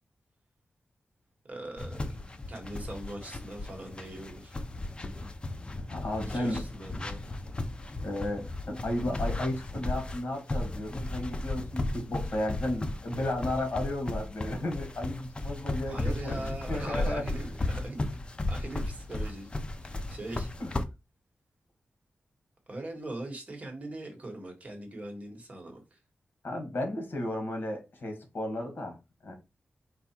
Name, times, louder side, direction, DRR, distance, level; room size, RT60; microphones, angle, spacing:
voice 1, 1.4-4.6 5.2-5.3 6.2-7.2 15.9-18.1 18.5-20.5 22.7-26.0, right 1 dB, 35° right, 1.2 m, -41 dB
sound 1, 1.8-20.9, left 2 dB, 25° left, 0.5 m, -35 dB
voice 2, 5.9-6.6 8.0-17.2 20.6-20.8 26.4-29.0 29.2-29.3, left 1 dB, 60° left, 1.6 m, -34 dB
4.8 x 2.3 x 4.2 m
wide cardioid pair, 145°, 4 cm